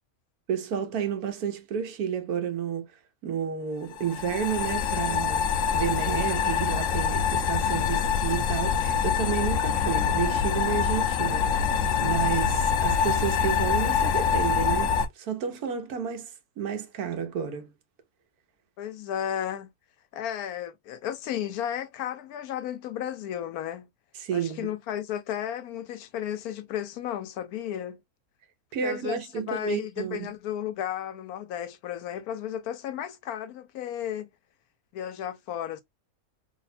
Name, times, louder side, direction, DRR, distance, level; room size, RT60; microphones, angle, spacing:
voice 1, 0.5-2.9 3.2-17.7 24.2-24.7 28.7-30.3, right 8 dB, 90° right, 1.3 m, -31 dB
sound 1, 3.9-15.1, left 7 dB, 65° left, 0.9 m, -25 dB
voice 2, 18.8-19.7 20.1-23.9 24.3-28.0 28.8-34.3 34.9-35.8, left 10 dB, 85° left, 1.2 m, -33 dB
3.3 x 2.1 x 4.1 m
omnidirectional pair, 1.5 m